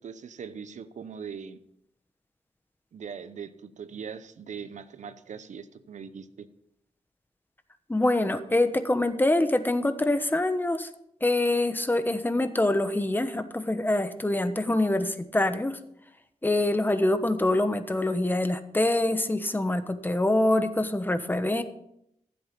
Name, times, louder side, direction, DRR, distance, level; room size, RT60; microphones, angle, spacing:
voice 1, 0.0-1.6 2.9-6.5, right 6 dB, 80° right, 13 dB, 0.8 m, -41 dB
voice 2, 7.9-10.9 11.2-15.8 16.4-21.6, left 1 dB, 15° left, 10 dB, 1.1 m, -25 dB
15.0 x 7.9 x 5.2 m, 0.77 s
wide cardioid pair, 90°, 12 cm